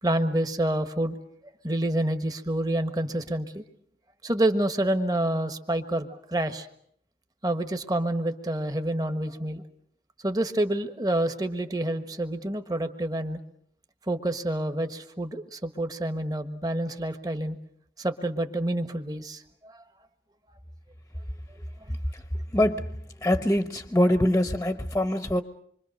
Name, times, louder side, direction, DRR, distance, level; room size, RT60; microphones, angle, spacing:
voice 1, 0.0-1.2 1.6-3.6 4.2-6.7 7.4-9.6 10.2-13.4 14.1-17.6 18.0-19.8 21.9-22.0, right 1 dB, 20° right, 8 dB, 1.4 m, -28 dB
voice 2, 22.5-22.9 23.2-25.4, left 1 dB, 10° left, 8 dB, 1.0 m, -23 dB
26.5 x 24.5 x 6.5 m, 0.68 s
head